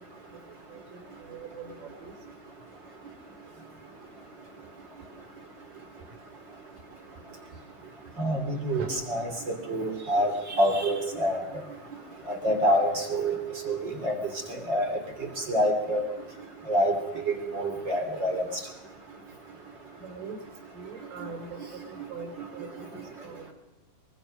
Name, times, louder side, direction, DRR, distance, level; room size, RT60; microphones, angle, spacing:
voice 1, 0.7-2.1 8.7-8.9 20.0-20.4 20.7-23.5, right 5 dB, 75° right, 7 dB, 4.9 m, -42 dB
voice 2, 8.2-10.3 10.6-11.4 12.4-13.4 13.7-13.8 14.0-14.1 14.7-14.8 15.5-16.0 16.7-16.9 17.3-18.4, equal, 35° right, 5 dB, 3.3 m, -26 dB
24.0 x 23.5 x 6.5 m, 1.1 s
omnidirectional pair, 3.9 m